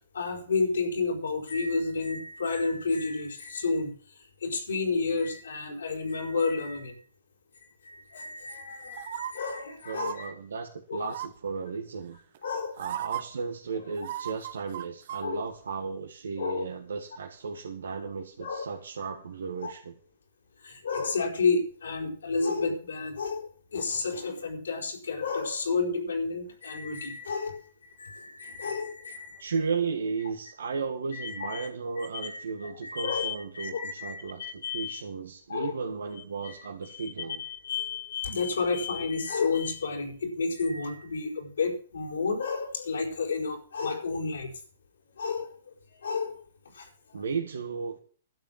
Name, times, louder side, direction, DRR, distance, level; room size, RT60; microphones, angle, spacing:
voice 1, 0.0-7.0 7.8-10.3 10.9-11.1 12.4-12.8 15.2-15.4 16.4-16.6 18.4-18.7 19.6-19.7 20.6-29.5 31.1-31.7 32.0-35.0 35.5-35.7 36.4-36.5 36.9-44.5 45.2-45.5 45.9-46.4 46.7-47.2, left 4 dB, 85° left, 0 dB, 4.8 m, -31 dB
sound 1, 8.9-9.3 9.9-10.2 11.1-11.5 12.3-12.4 12.8-13.2 14.0-15.2 15.6-15.7, right 12 dB, 60° right, 1.1 m, -35 dB
voice 2, 9.9-12.2 12.8-19.9 29.4-37.4 47.1-48.0, right 5 dB, 80° right, 3 dB, 1.8 m, -35 dB
12.0 x 7.8 x 7.5 m, 0.43 s
hypercardioid pair, 125°, 0 cm